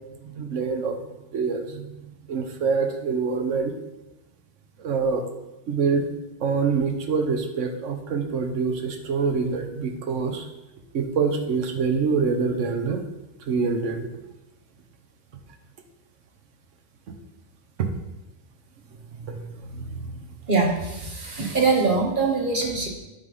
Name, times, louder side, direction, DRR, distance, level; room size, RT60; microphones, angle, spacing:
voice 1, 0.2-1.0 1.3-1.9 2.3-3.7 4.8-5.2 5.7-6.1 6.4-10.4 10.9-13.0 13.5-14.1 17.8-17.9 19.2-20.1, right 5 dB, 70° right, 5 dB, 1.2 m, -25 dB
voice 2, 20.5-22.9, right 3 dB, 40° right, 0 dB, 1.2 m, -23 dB
9.0 x 3.3 x 5.4 m, 0.97 s
omnidirectional pair, 1.4 m